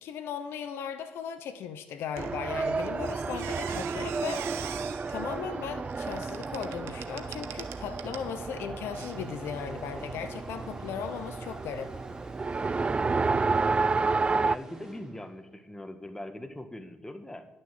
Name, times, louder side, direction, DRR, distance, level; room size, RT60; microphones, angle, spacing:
voice 1, 0.0-4.5 5.1-11.9, left 7 dB, 70° left, 10 dB, 0.8 m, -37 dB
Race car auto racing, 2.2-14.6, right 4 dB, 30° right, 0.3 m, -31 dB
Squeak, 2.2-8.3 8.9-9.1, right 10 dB, 75° right, 0.9 m, -43 dB
sound 1, 8.9-15.6, right 1 dB, 10° right, 3.0 m, -48 dB
voice 2, 12.6-13.9 14.3-17.5, left 1 dB, 15° left, 8 dB, 1.6 m, -42 dB
11.0 x 6.4 x 7.7 m, 0.95 s
hypercardioid pair, 50°, 4 cm